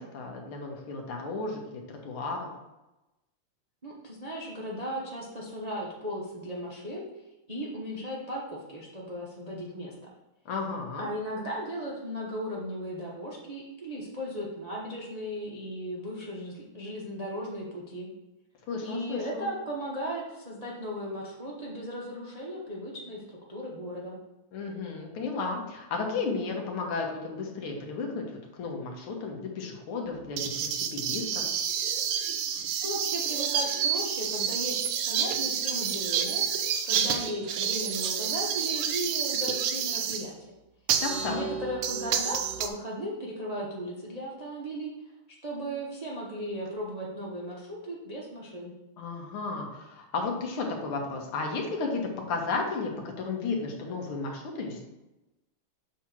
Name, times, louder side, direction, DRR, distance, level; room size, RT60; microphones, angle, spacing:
voice 1, 0.0-2.5 10.5-11.1 18.7-19.5 24.5-28.2 28.5-31.4 41.0-41.4 49.0-52.0 52.3-54.8, left 4 dB, 80° left, 1 dB, 2.0 m, -33 dB
voice 2, 3.8-7.0 7.5-9.9 11.0-18.1 18.8-24.2 32.8-34.8 35.1-40.5 41.3-44.9 45.4-48.7, equal, 40° right, -4 dB, 0.5 m, -36 dB
sound 1, 30.4-40.3 40.9-42.7, right 8 dB, 85° right, 1.5 m, -29 dB
7.4 x 2.9 x 5.9 m, 0.99 s
omnidirectional pair, 2.4 m